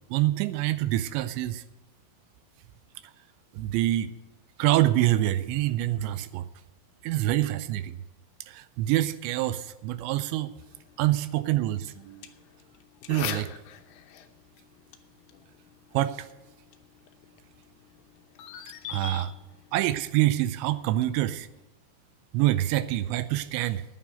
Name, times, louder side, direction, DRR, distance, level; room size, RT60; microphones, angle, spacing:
voice 1, 0.1-1.6 3.5-4.1 4.6-6.5 7.0-8.0 8.5-10.5 11.0-12.3 13.1-13.5 15.9-16.3 18.9-19.3 19.7-21.5 22.3-23.8, right 14 dB, 85° right, 14 dB, 2.8 m, -26 dB
sound 1, 10.6-21.6, left 8 dB, 80° left, 2.1 m, -44 dB
9.7 x 8.6 x 9.1 m, 1.0 s
omnidirectional pair, 5.2 m